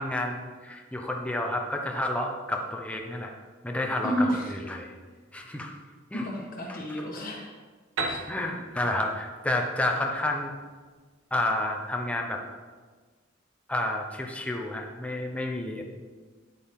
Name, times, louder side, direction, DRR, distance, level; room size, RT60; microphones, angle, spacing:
voice 1, 0.0-3.3 3.6-4.9 5.3-5.8 6.1-6.2 6.7-6.8 8.0-10.5 11.3-12.4 13.7-15.8, left 1 dB, 5° left, 1 dB, 0.9 m, -30 dB
voice 2, 4.0-4.6 6.1-7.5 8.0-8.2, equal, 45° left, -3 dB, 1.4 m, -30 dB
Piano, 8.0-11.6, right 2 dB, 85° right, 1.4 m, -37 dB
9.9 x 8.5 x 3.7 m, 1.4 s
head